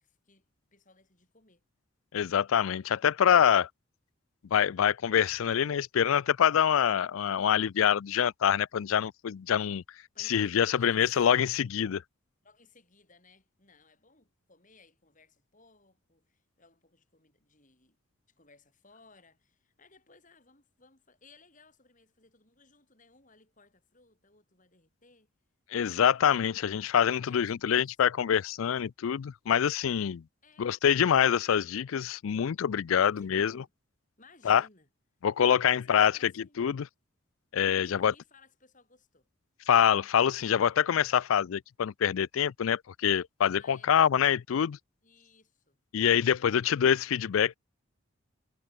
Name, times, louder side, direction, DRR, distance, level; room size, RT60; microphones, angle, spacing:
voice 1, 0.0-1.6 10.1-11.4 12.4-18.0 18.3-25.3 27.0-27.9 30.4-30.8 32.9-33.7 34.2-34.9 35.7-36.6 37.7-39.3 43.6-44.1 45.0-45.8 46.2-46.6, left 3 dB, 40° left, 6.1 m, -60 dB
voice 2, 2.1-3.7 4.5-9.8 10.2-12.0 25.7-30.2 30.6-33.5 34.5-34.6 35.2-36.3 36.6-36.9 37.5-38.1 39.7-44.8 45.9-47.6, left 8 dB, 80° left, 0.4 m, -25 dB
head